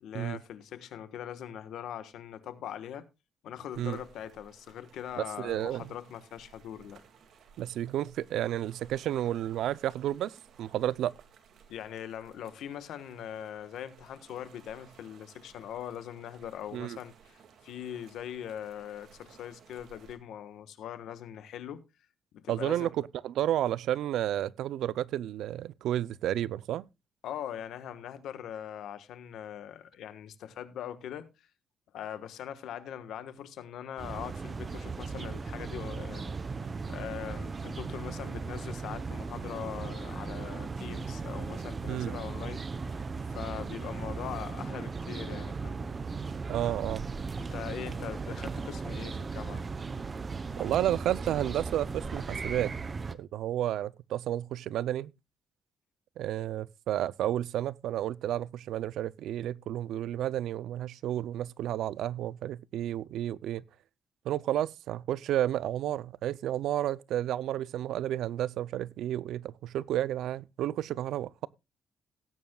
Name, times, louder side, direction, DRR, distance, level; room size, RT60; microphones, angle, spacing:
voice 1, 0.0-3.1 3.4-7.0 11.7-21.8 22.3-22.9 27.2-31.5 31.9-36.4 36.9-43.0 43.3-45.8 47.4-49.6, left 10 dB, 85° left, 1.3 m, -41 dB
sound 1, 3.7-20.2, right 6 dB, 70° right, 2.1 m, -59 dB
voice 2, 5.2-5.9 7.6-10.3 10.6-11.1 16.7-17.0 22.5-26.9 41.9-42.2 46.5-47.0 50.6-52.7 53.1-55.1 56.2-63.6 64.3-71.5, right 12 dB, 85° right, 0.4 m, -31 dB
sound 2, 34.0-53.2, right 4 dB, 30° right, 0.8 m, -37 dB
18.0 x 9.4 x 2.3 m
cardioid pair, 120°, 0 cm